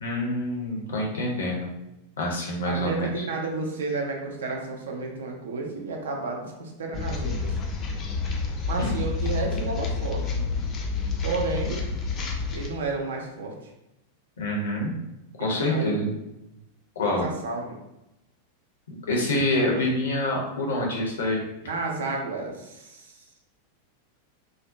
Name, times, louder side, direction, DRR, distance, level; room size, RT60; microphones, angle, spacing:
voice 1, 0.0-1.7 2.2-3.2 8.8-9.0 14.4-14.9 15.4-16.1 17.0-17.3 19.1-21.4, left 1 dB, 65° left, -1 dB, 0.6 m, -26 dB
voice 2, 2.6-7.6 8.7-10.4 11.2-11.8 12.5-13.5 15.4-16.0 17.0-17.8 21.6-23.1, right 3 dB, 65° right, 1 dB, 0.5 m, -31 dB
sound 1, 6.9-12.7, left 4 dB, 30° left, 0.3 m, -29 dB
2.4 x 2.0 x 2.5 m, 0.90 s
figure-of-eight pair, 90°, 0 cm